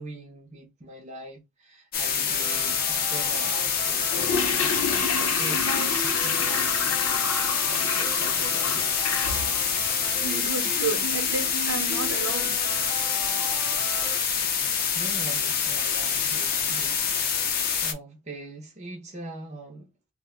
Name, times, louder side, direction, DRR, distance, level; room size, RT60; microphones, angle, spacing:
voice 1, 0.0-7.0 7.7-8.9 14.9-17.1 17.5-20.1, right 2 dB, 30° right, 0.6 m, -41 dB
sound 1, 1.9-17.9, left 7 dB, 45° left, 0.6 m, -26 dB
sound 2, 2.3-14.2, equal, 15° left, 0.8 m, -39 dB
Toilet flush, 4.0-11.1 11.4-11.5, left 5 dB, 85° left, 0.7 m, -31 dB
voice 2, 10.2-12.5, right 4 dB, 65° right, 0.8 m, -32 dB
2.5 x 2.1 x 3.6 m
head